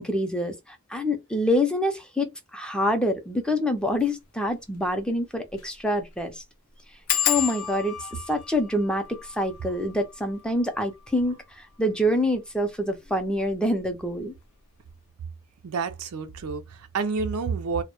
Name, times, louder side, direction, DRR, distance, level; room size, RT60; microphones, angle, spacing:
voice 1, 0.0-2.3 2.5-6.4 7.3-7.9 8.3-11.4 11.8-14.3, left 1 dB, 5° left, 0.4 m, -26 dB
sound 1, 3.9-4.1 4.5-4.6 4.8-4.9 5.5-5.8 6.0-6.1 7.1-12.3 13.0-13.5 13.9-14.2 14.5-14.6, left 10 dB, 75° left, 0.5 m, -32 dB
voice 2, 15.6-17.8, right 5 dB, 85° right, 0.4 m, -29 dB
2.1 x 2.0 x 2.8 m
head